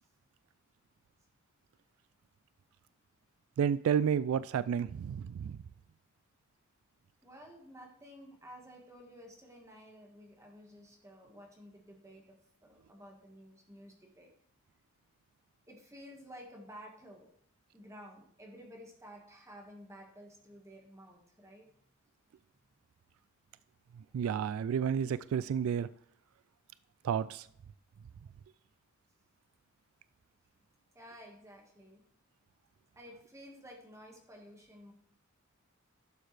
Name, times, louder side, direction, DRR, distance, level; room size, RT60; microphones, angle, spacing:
voice 1, 3.6-5.6 24.1-25.9 27.0-27.5, right 8 dB, 90° right, 0.3 m, -31 dB
voice 2, 7.2-14.3 15.7-17.3 17.7-21.8 30.9-32.0 33.0-34.9, equal, 15° right, 1.6 m, -53 dB
11.5 x 6.7 x 3.3 m
head